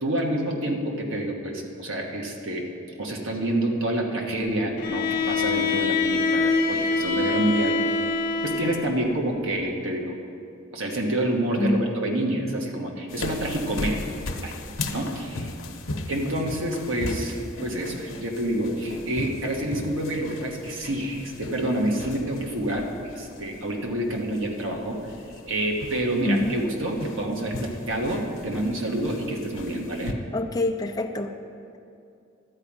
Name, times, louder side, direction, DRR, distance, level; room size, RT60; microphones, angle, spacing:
voice 1, 0.0-2.7 3.0-7.8 8.4-10.1 10.7-14.0 14.4-14.5 14.9-15.5 16.1-25.0 25.5-30.2, right 1 dB, 70° right, 1 dB, 1.4 m, -28 dB
Bowed string instrument, 4.8-9.1, left 4 dB, 45° left, 0.9 m, -25 dB
sound 1, 13.1-30.1, left 2 dB, 70° left, 0.9 m, -37 dB
voice 2, 26.3-26.6 30.3-31.3, left 2 dB, 20° left, 1 dB, 0.6 m, -25 dB
12.5 x 4.9 x 8.7 m, 2.5 s
head